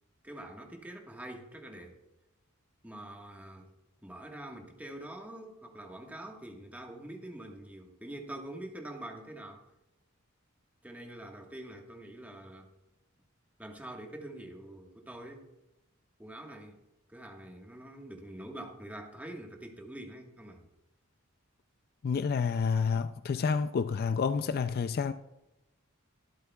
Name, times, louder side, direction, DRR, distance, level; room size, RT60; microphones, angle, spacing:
voice 1, 0.2-1.9 2.8-3.7 4.0-9.6 10.8-12.7 13.6-15.5 16.2-16.8 17.1-20.6, right 1 dB, 10° right, 1.4 m, -45 dB
voice 2, 22.0-25.1, left 5 dB, 45° left, 0.4 m, -29 dB
23.0 x 8.3 x 2.3 m
head